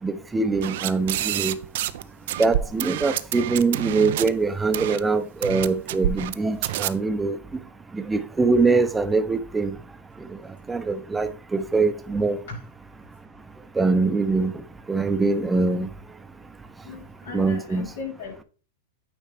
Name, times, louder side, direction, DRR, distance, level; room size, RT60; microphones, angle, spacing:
voice 1, 0.0-1.6 2.4-7.4 7.9-9.8 10.7-12.4 13.8-14.5 14.9-15.9 17.3-17.9, right 3 dB, 10° right, 0.6 m, -23 dB
sound 1, 0.6-2.0 2.3-4.3 4.7-5.0 5.4-6.3 6.6-6.9, right 13 dB, 65° right, 0.4 m, -27 dB
voice 2, 16.8-18.4, left 5 dB, 85° left, 3.7 m, -37 dB
9.0 x 4.0 x 3.4 m
hypercardioid pair, 125°, 0 cm